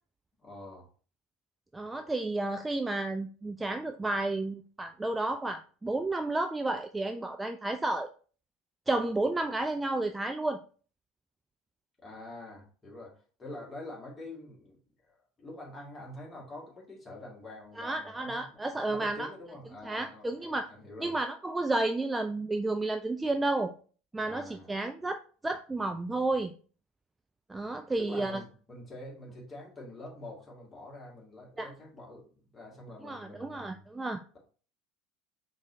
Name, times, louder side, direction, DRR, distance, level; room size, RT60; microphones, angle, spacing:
voice 1, 0.4-0.9 12.0-14.8 15.4-21.2 24.2-24.7 28.0-33.9, left 1 dB, 15° left, -3 dB, 1.8 m, -46 dB
voice 2, 1.7-8.1 8.9-10.6 17.8-19.3 19.8-20.7 21.0-23.7 24.1-26.5 27.5-28.4 31.6-31.7 33.0-34.2, right 2 dB, 10° right, 6 dB, 0.3 m, -31 dB
3.9 x 3.7 x 3.1 m, 0.40 s
figure-of-eight pair, 75°, 0 cm